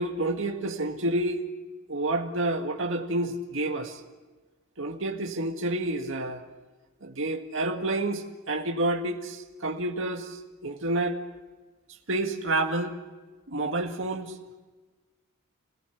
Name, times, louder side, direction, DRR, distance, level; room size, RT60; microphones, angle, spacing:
voice 1, 0.0-1.4 1.9-4.0 4.8-6.4 7.0-11.2 12.1-12.9 13.5-14.3, right 2 dB, 65° right, 2 dB, 2.1 m, -29 dB
29.5 x 18.0 x 7.2 m, 1.3 s
head